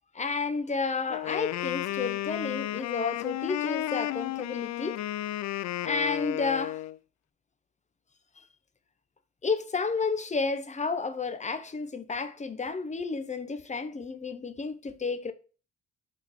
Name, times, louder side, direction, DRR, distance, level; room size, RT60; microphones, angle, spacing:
voice 1, 0.1-5.0 5.8-6.8 9.4-15.3, left 4 dB, 25° left, 0.9 m, -31 dB
Wind instrument woodwind instrument, 1.1-7.0, left 14 dB, 65° left, 0.4 m, -33 dB
5.6 x 4.1 x 4.7 m
cardioid pair, 90°, 30 cm